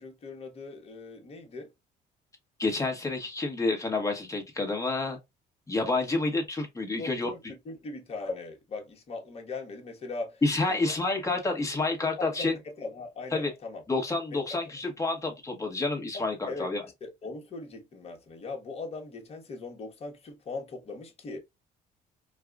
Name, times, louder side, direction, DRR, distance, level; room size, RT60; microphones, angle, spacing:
voice 1, 0.0-1.7 7.0-10.4 10.7-11.0 12.2-13.8 14.3-14.6 16.1-16.7 17.0-21.4, left 3 dB, 35° left, 1.3 m, -39 dB
voice 2, 2.6-5.2 5.7-7.3 10.4-12.6 13.3-13.5 13.9-16.8, left 3 dB, 20° left, 1.4 m, -29 dB
4.7 x 2.3 x 2.4 m
cardioid pair, 110°, 17 cm